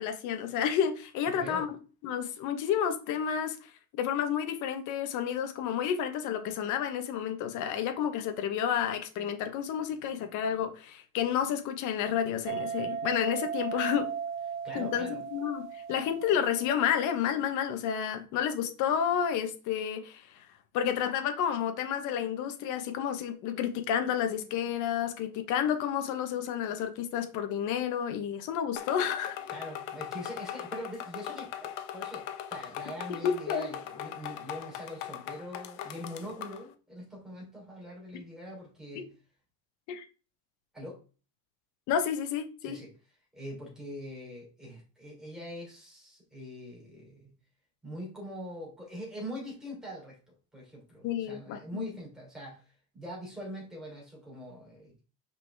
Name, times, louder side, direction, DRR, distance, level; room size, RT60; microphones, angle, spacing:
voice 1, 0.0-1.7 2.0-3.6 3.9-14.1 14.7-20.2 20.7-29.4 33.1-33.7 39.0-39.1 39.9-40.0 41.9-42.8 51.0-51.9, left 8 dB, 55° left, 1.1 m, -30 dB
voice 2, 1.3-1.7 14.6-15.2 29.5-39.1 40.7-41.0 42.6-42.9 43.3-47.3 47.8-50.2 50.5-52.6 52.9-55.0, equal, ahead, 3.2 m, -43 dB
sound 1, 12.4-17.2, right 7 dB, 50° right, 0.5 m, -37 dB
sound 2, 28.7-36.6, left 11 dB, 90° left, 0.9 m, -40 dB
5.9 x 4.9 x 3.4 m
cardioid pair, 165°, 36 cm